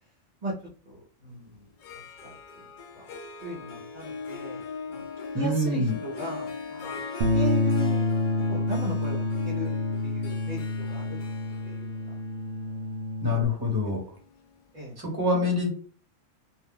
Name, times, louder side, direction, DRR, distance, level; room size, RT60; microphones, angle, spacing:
voice 1, 0.9-1.6 2.2-2.3 3.4-4.6 4.9-5.0 5.3-7.0 7.3-8.1 8.5-9.7 10.0-11.2 11.6-12.0 13.3-13.6 14.7-15.0, right 1 dB, 40° right, -4 dB, 0.7 m, -37 dB
Harp, 1.7-14.6, left 5 dB, 70° left, 0.4 m, -40 dB
voice 2, 5.3-5.9 13.2-14.0 15.0-15.8, left 2 dB, 20° right, -2 dB, 1.1 m, -25 dB
Bass guitar, 7.2-13.4, left 2 dB, 85° right, 0.4 m, -28 dB
2.6 x 2.2 x 3.6 m, 0.41 s
omnidirectional pair, 1.4 m